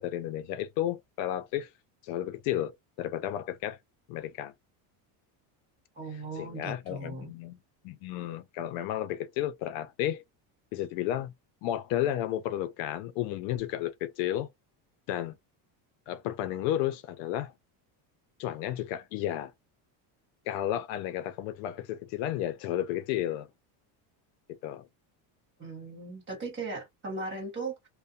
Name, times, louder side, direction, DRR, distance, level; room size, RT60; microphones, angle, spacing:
voice 1, 0.0-1.7 2.0-2.7 3.0-3.8 4.1-4.5 6.1-7.6 7.8-10.2 10.7-11.3 11.6-14.5 15.1-15.4 16.1-17.5 18.4-19.5 20.5-23.5 24.5-24.9, left 12 dB, 70° left, 0.5 m, -32 dB
voice 2, 5.9-7.3 25.6-27.9, right 3 dB, 25° right, 1.3 m, -38 dB
2.6 x 2.1 x 2.7 m
cardioid pair, 165°, 49 cm